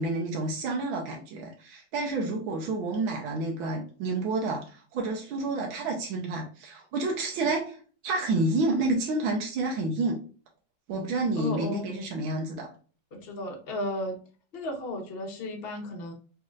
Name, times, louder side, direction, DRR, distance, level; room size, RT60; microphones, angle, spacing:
voice 1, 0.0-7.8 8.0-10.2 10.9-12.7, right 2 dB, 85° right, 0 dB, 1.6 m, -29 dB
voice 2, 11.4-12.0 13.1-14.2 14.5-16.1, left 1 dB, 50° left, 2 dB, 0.7 m, -34 dB
4.2 x 3.2 x 2.4 m, 0.40 s
omnidirectional pair, 2.1 m